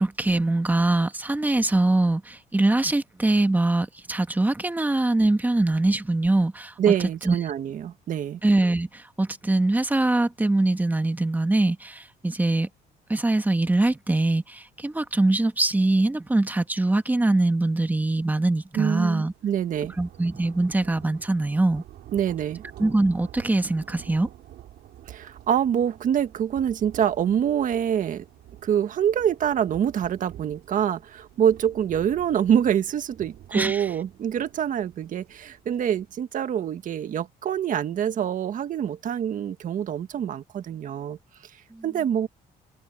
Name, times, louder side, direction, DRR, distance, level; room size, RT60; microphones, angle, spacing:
voice 1, 0.0-6.7 7.2-7.3 8.4-12.7 13.1-19.3 20.0-21.8 22.8-24.3 33.5-33.9 41.7-41.8, right 2 dB, 10° right, 1.5 m, -23 dB
voice 2, 6.8-8.4 18.7-19.9 22.1-22.6 25.1-28.2 28.6-41.2 41.8-42.3, right 9 dB, 50° right, 1.6 m, -25 dB
sound 1, 18.4-18.6 18.9-36.2, right 13 dB, 70° right, 5.4 m, -48 dB
cardioid pair, 110°, 17 cm